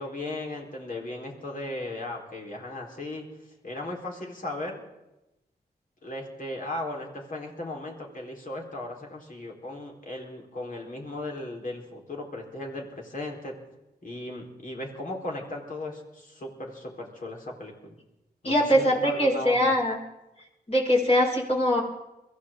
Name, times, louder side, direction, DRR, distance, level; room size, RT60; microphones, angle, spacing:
voice 1, 0.0-3.3 3.6-4.8 6.0-13.5 14.0-17.9 18.4-19.8, left 1 dB, 55° left, -1 dB, 4.1 m, -36 dB
voice 2, 18.4-20.0 20.7-21.8, equal, 35° left, -3 dB, 5.5 m, -22 dB
22.5 x 15.0 x 3.8 m, 0.96 s
cardioid pair, 55°, 17 cm